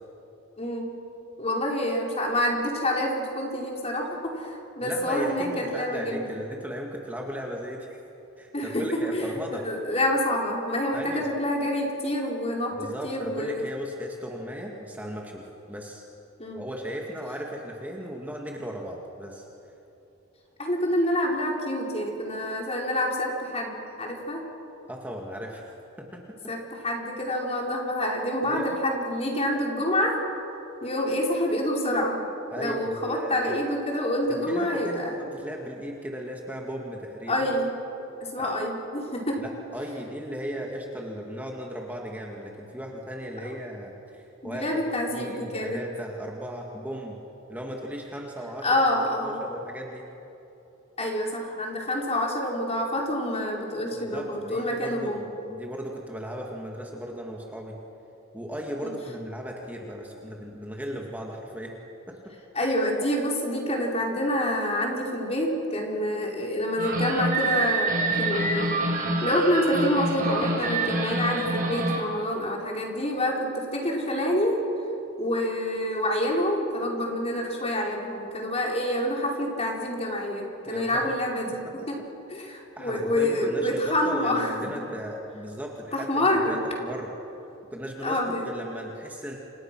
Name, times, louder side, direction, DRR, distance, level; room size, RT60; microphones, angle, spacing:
voice 1, 0.6-0.9 1.4-6.4 8.5-9.4 9.6-13.6 16.4-16.6 20.6-24.4 26.5-30.2 30.8-32.2 32.6-35.2 37.3-37.7 38.2-39.4 43.4-43.5 44.4-45.8 48.6-49.4 51.0-55.3 58.8-58.9 62.5-68.8 69.2-74.6 75.2-82.0 82.3-84.7 85.9-86.6 88.0-88.5, left 1 dB, 30° left, -1 dB, 4.6 m, -27 dB
voice 2, 4.8-8.0 8.4-9.7 10.9-11.3 12.7-16.0 16.6-19.5 24.9-26.5 28.4-28.8 32.5-33.5 34.3-37.5 38.4-38.6 39.4-44.7 45.1-47.2 47.5-48.8 49.2-50.0 53.9-55.2 55.5-57.8 58.3-61.8 62.1-62.4 80.6-81.1 81.6-81.7 82.8-87.1 87.7-89.4, equal, 10° right, -1 dB, 2.1 m, -36 dB
sound 1, 66.8-72.0, right 2 dB, 40° right, 4.9 m, -27 dB
29.5 x 27.0 x 6.2 m, 3.0 s
head